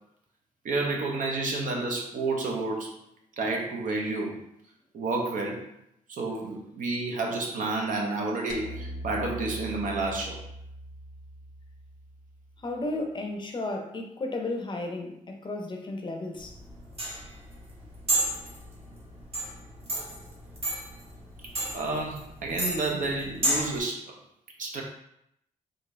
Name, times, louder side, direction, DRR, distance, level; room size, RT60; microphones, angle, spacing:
voice 1, 0.6-3.0 3.4-4.4 4.9-5.6 6.1-10.4 21.7-24.1 24.6-24.8, right 3 dB, 70° right, 0 dB, 0.8 m, -30 dB
sound 1, 8.5-12.9, equal, 85° left, 0.4 m, -41 dB
voice 2, 12.6-16.5, left 2 dB, 35° left, 3 dB, 0.6 m, -33 dB
sound 2, 16.4-23.8, right 1 dB, 45° right, 1.2 m, -32 dB
3.7 x 2.6 x 3.2 m, 0.76 s
cardioid pair, 110°, 14 cm